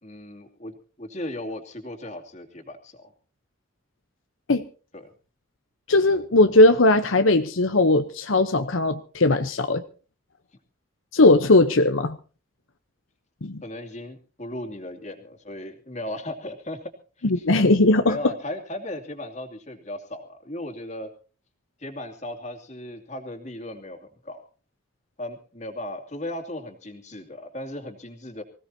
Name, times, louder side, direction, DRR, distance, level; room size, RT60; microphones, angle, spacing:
voice 1, 0.0-3.1 4.9-5.1 13.6-16.9 17.2-17.4 18.1-21.1 21.8-24.4 25.2-28.4, left 1 dB, 35° left, 5 dB, 2.6 m, -36 dB
voice 2, 5.9-9.8 11.1-12.2 13.4-13.6 17.2-18.2, left 2 dB, 80° left, 9 dB, 0.9 m, -18 dB
24.5 x 16.5 x 2.8 m, 0.36 s
head